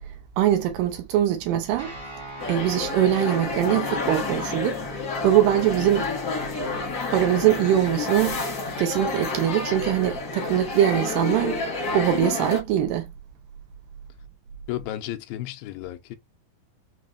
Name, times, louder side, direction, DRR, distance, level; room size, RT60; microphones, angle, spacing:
voice 1, 0.0-1.9 2.5-6.1 7.1-11.6 11.9-13.1, right 11 dB, 80° right, 2.1 m, -23 dB
sound 1, 1.8-10.7, equal, 40° right, 0.9 m, -43 dB
sound 2, 2.4-12.6, left 4 dB, 55° left, 1.1 m, -30 dB
voice 2, 14.7-16.2, left 14 dB, 85° left, 2.3 m, -33 dB
6.0 x 2.1 x 2.4 m
omnidirectional pair, 4.1 m